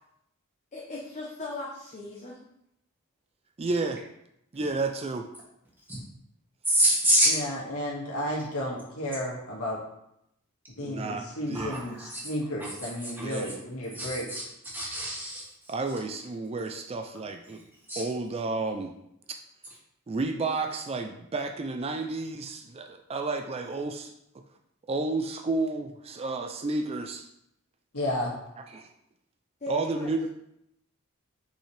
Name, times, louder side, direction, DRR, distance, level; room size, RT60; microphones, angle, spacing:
voice 1, 0.7-2.5 29.6-30.1, left 2 dB, 30° left, -4 dB, 0.8 m, -38 dB
voice 2, 3.6-4.0 4.5-5.3 10.8-12.1 13.2-13.5 15.7-17.6 18.0-18.9 20.1-24.1 24.9-27.3 28.7-28.9 29.7-30.3, right 3 dB, 25° right, 5 dB, 0.4 m, -31 dB
voice 3, 6.7-7.4 11.5-12.3 12.6-12.7 13.0-13.2 13.9-14.4 14.7-15.7 17.9-18.0, equal, 10° right, -6 dB, 1.9 m, -27 dB
voice 4, 7.3-9.8 10.8-14.3 27.9-28.4, equal, 80° left, -3 dB, 1.9 m, -33 dB
6.0 x 5.5 x 3.3 m, 0.80 s
head